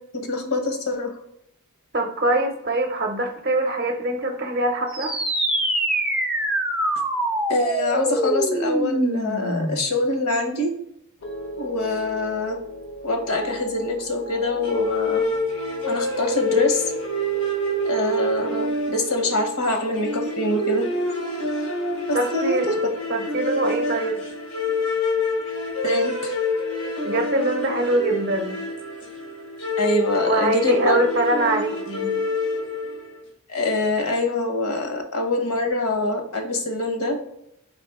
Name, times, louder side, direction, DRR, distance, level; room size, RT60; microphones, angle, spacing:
voice 1, 0.2-1.2 7.5-10.7 11.6-12.6 13.0-15.2 15.8-16.8 17.8-20.8 22.1-22.7 25.8-26.4 29.8-31.0 33.5-37.2, left 2 dB, 75° left, 4 dB, 1.0 m, -24 dB
voice 2, 1.9-5.2 22.1-22.7 23.1-24.2 27.0-28.6 30.3-32.1, right 2 dB, 45° right, 5 dB, 0.6 m, -23 dB
sound 1, 4.9-9.9, right 1 dB, 5° right, 0.3 m, -24 dB
sound 2, 11.2-21.6 21.9-22.4, equal, 55° left, 0.5 m, -40 dB
sound 3, 14.6-33.1, left 1 dB, 90° left, 1.3 m, -27 dB
4.1 x 3.4 x 3.4 m, 0.77 s
head